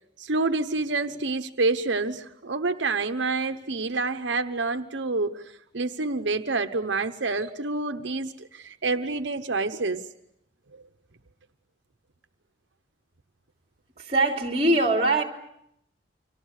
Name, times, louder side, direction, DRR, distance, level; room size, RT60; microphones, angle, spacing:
voice 1, 0.2-5.4 5.7-10.1 10.7-10.8, right 3 dB, 85° right, 1.0 m, -28 dB
voice 2, 14.0-15.2, right 2 dB, 35° right, 3.2 m, -22 dB
30.0 x 26.0 x 6.6 m
head